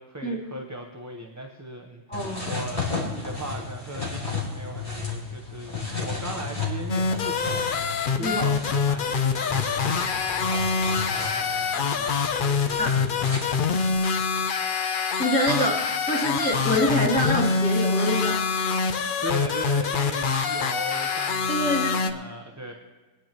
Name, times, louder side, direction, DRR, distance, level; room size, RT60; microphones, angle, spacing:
voice 1, 0.0-5.7 6.0-13.7 18.9-22.7, right 1 dB, 15° right, 2 dB, 0.8 m, -38 dB
sound 1, 2.1-14.0, left 4 dB, 30° left, 3.0 m, -34 dB
voice 2, 2.1-2.6 8.2-8.4 12.8-12.9 15.2-18.4 21.5-22.0, left 1 dB, 5° left, -7 dB, 3.2 m, -26 dB
sound 2, 6.9-22.1, left 5 dB, 50° left, 0.8 m, -25 dB
23.0 x 10.0 x 3.0 m, 1.3 s
omnidirectional pair, 1.2 m